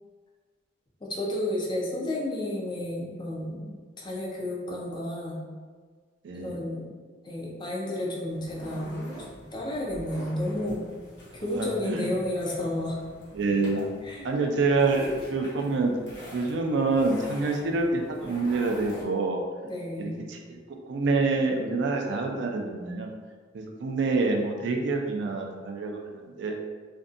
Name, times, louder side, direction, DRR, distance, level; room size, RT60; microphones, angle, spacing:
voice 1, 1.0-5.4 6.3-6.9 7.2-8.9 9.4-10.9 11.3-13.0 14.0-14.3 19.6-20.2, left 1 dB, 25° left, -3 dB, 0.4 m, -32 dB
voice 2, 6.2-6.6 11.4-12.1 13.3-13.9 14.2-15.9 16.3-19.4 20.0-23.1 23.5-26.6, right 3 dB, 65° right, 2 dB, 0.4 m, -27 dB
sound 1, 8.3-19.0, equal, 60° left, 0.8 m, -45 dB
2.6 x 2.2 x 2.4 m, 1.5 s
head